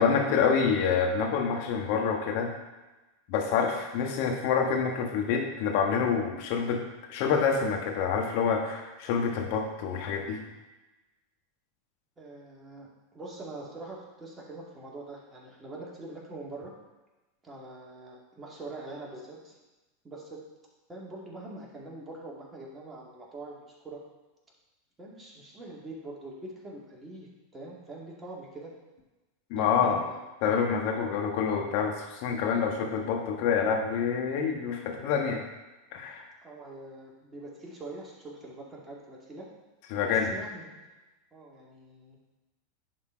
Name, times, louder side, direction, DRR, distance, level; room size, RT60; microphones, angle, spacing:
voice 1, 0.0-2.5 3.3-6.8 7.1-10.4 29.5-30.0 30.4-35.4 35.9-36.2 39.9-40.3, left 6 dB, 55° left, 2 dB, 1.5 m, -27 dB
voice 2, 12.2-12.9 13.1-16.7 17.4-19.5 20.0-20.4 20.9-24.0 25.0-28.7 29.6-30.2 36.4-39.5 40.0-40.8 41.3-42.2, right 2 dB, 20° right, -4 dB, 2.3 m, -44 dB
10.5 x 4.3 x 4.5 m, 1.1 s
hypercardioid pair, 90°, 0 cm